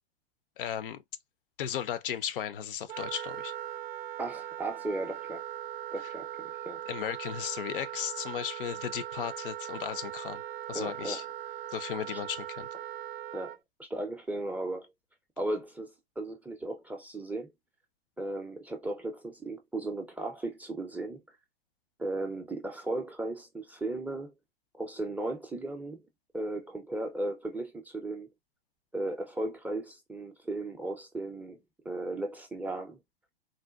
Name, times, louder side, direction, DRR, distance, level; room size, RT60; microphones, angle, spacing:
voice 1, 0.6-1.0 1.6-3.5 6.9-10.4 10.7-11.2 11.7-12.7, left 9 dB, 60° left, 0.6 m, -35 dB
Wind instrument woodwind instrument, 2.9-13.6, right 12 dB, 70° right, 0.5 m, -40 dB
voice 2, 4.2-5.4 5.9-6.8 10.7-11.2 12.1-12.2 13.3-14.9 15.4-17.5 18.2-21.4 22.0-24.3 24.7-26.0 26.3-28.3 28.9-31.6 31.8-33.0, right 2 dB, 5° right, 0.4 m, -36 dB
3.9 x 2.1 x 2.3 m
hypercardioid pair, 105°, 31 cm